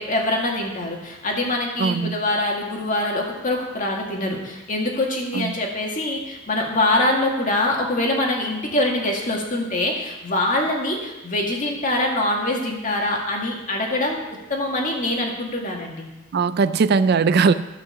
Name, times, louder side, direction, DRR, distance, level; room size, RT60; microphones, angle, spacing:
voice 1, 0.0-14.2 14.5-16.1, left 1 dB, 40° left, 0 dB, 2.0 m, -24 dB
voice 2, 1.8-2.1 5.3-5.5 16.3-17.5, right 5 dB, 55° right, 13 dB, 0.4 m, -19 dB
13.0 x 5.7 x 7.0 m, 1.0 s
head